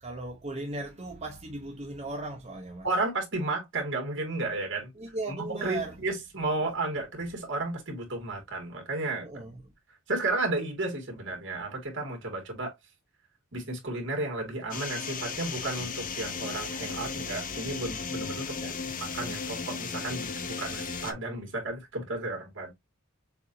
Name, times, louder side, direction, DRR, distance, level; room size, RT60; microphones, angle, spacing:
voice 1, 0.0-2.9 4.9-6.0 9.2-9.6 18.6-18.7, right 2 dB, 30° right, 0.8 m, -37 dB
voice 2, 2.8-4.9 5.5-9.3 10.1-12.7 13.5-22.7, right 2 dB, 60° right, 2.3 m, -33 dB
sound 1, 14.7-21.1, left 5 dB, 40° left, 0.7 m, -35 dB
6.7 x 2.7 x 2.7 m
head